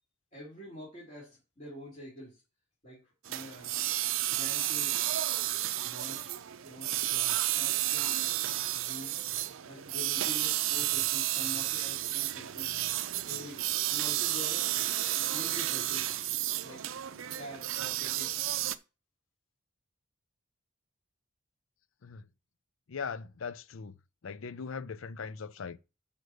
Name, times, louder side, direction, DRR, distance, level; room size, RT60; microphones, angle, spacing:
voice 1, 0.3-2.4 2.8-3.7 4.3-5.0 5.8-6.3 6.6-8.2 8.7-9.1 9.6-12.7 13.2-14.8 15.3-16.1 16.6-16.8 17.1-18.3, left 1 dB, 35° left, 3.4 m, -46 dB
sound 1, 3.2-18.7, right 14 dB, 75° right, 0.5 m, -32 dB
voice 2, 22.9-23.9 24.2-25.8, left 5 dB, 80° left, 0.5 m, -39 dB
6.5 x 5.2 x 6.5 m
head